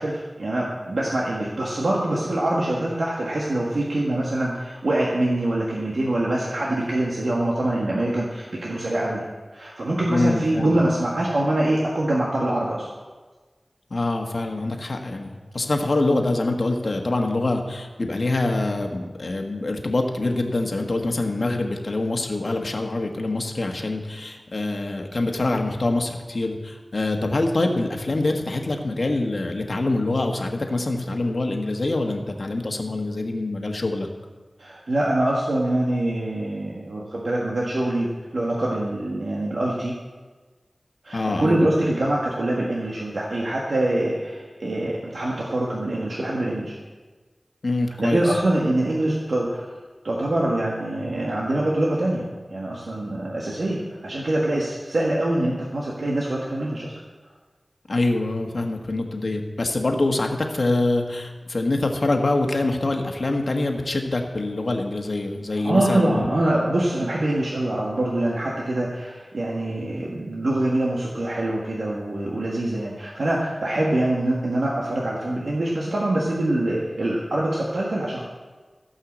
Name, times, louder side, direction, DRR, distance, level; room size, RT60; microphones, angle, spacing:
voice 1, 0.0-9.2 9.5-12.9 34.6-39.9 41.0-46.8 48.0-49.7 50.0-56.9 65.5-78.2, right 1 dB, 85° right, -4 dB, 1.6 m, -24 dB
voice 2, 10.1-10.7 13.9-34.1 41.1-41.8 47.6-48.3 57.9-66.3, left 2 dB, 70° left, 3 dB, 1.4 m, -25 dB
16.0 x 5.7 x 7.3 m, 1.3 s
wide cardioid pair, 55°, 0 cm